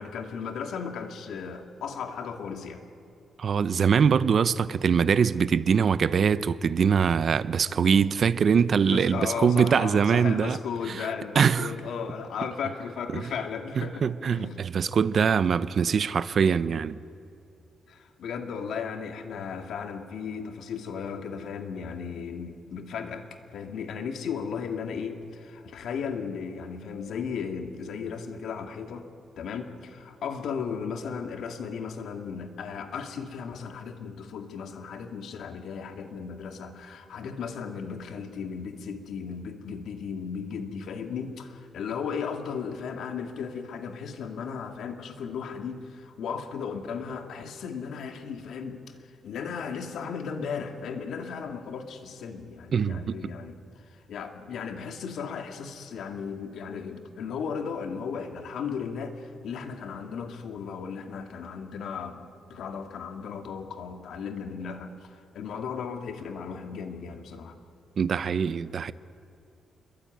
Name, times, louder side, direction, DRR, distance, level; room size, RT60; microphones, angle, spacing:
voice 1, 0.0-2.8 8.9-14.6 17.9-23.2 23.5-29.1 29.4-49.0 49.2-67.6, left 6 dB, 70° left, 2.2 m, -35 dB
voice 2, 3.4-10.6 10.9-11.1 11.3-11.7 13.1-13.2 13.8-17.0 52.7-53.1 68.0-68.9, right 6 dB, 40° right, 0.6 m, -23 dB
28.5 x 22.5 x 9.3 m
cardioid pair, 165°, 0 cm